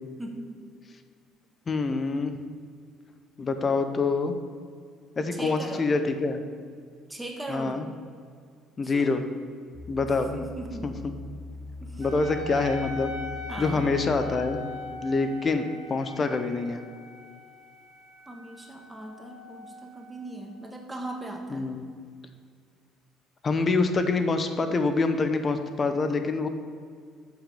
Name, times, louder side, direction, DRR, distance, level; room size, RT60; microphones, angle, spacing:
voice 1, 0.2-0.6 5.3-5.9 7.1-7.8 8.8-9.1 10.3-10.9 11.8-12.1 13.5-13.9 18.3-21.7, right 1 dB, 10° right, 2 dB, 1.5 m, -38 dB
voice 2, 1.7-2.3 3.4-4.3 5.2-6.4 7.5-7.9 8.8-9.2 9.9-10.4 10.8-11.1 12.0-13.1 13.6-14.6 15.0-16.8 21.5-21.8 23.4-26.5, left 3 dB, 35° left, 8 dB, 0.9 m, -26 dB
sound 1, 9.7-14.9 15.5-15.6, left 2 dB, 30° right, 1.7 m, -41 dB
Wind instrument woodwind instrument, 12.0-20.9, left 2 dB, 55° right, 2.7 m, -41 dB
7.2 x 6.3 x 6.8 m, 2.1 s
hypercardioid pair, 55°, 0 cm